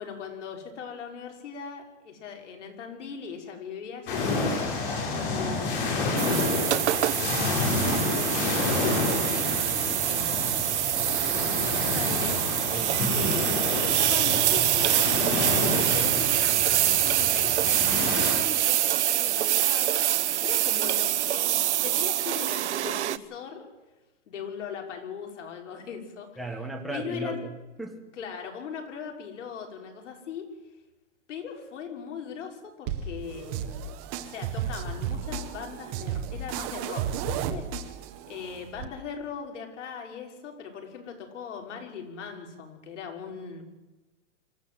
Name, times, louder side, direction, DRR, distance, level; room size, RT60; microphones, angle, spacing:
voice 1, 0.0-9.3 10.0-11.2 11.6-12.4 13.1-15.2 15.6-23.7 24.3-26.4 26.9-27.4 28.2-30.5 31.3-38.0 38.3-43.6, left 6 dB, 75° left, 2 dB, 5.6 m, -40 dB
sound 1, 4.1-18.3, left 3 dB, 45° left, 7.6 m, -29 dB
sound 2, 6.2-23.2, right 13 dB, 65° right, 1.0 m, -25 dB
voice 2, 26.4-27.5 27.8-28.0, right 2 dB, ahead, 1 dB, 1.4 m, -36 dB
sound 3, 32.9-38.8, right 8 dB, 20° right, 0.9 m, -33 dB
26.0 x 14.0 x 7.9 m, 1.1 s
supercardioid pair, 180°, 37 cm